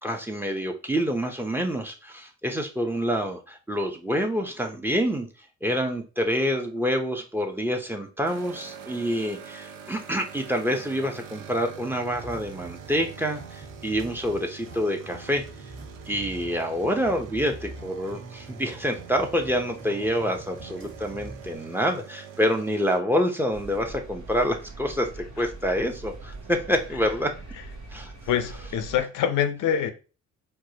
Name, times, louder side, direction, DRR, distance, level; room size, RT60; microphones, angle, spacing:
voice 1, 0.0-5.3 5.6-15.4 16.1-25.1 25.4-27.3 27.9-28.1, equal, 5° right, 0.6 m, -27 dB
sound 1, 8.3-23.0, right 8 dB, 85° right, 0.6 m, -45 dB
sound 2, 12.1-21.6, right 2 dB, 45° right, 1.4 m, -44 dB
sound 3, 23.5-29.0, right 3 dB, 70° right, 0.9 m, -42 dB
voice 2, 28.3-29.9, left 9 dB, 80° left, 0.6 m, -25 dB
4.5 x 2.1 x 2.7 m
cardioid pair, 90°, 30 cm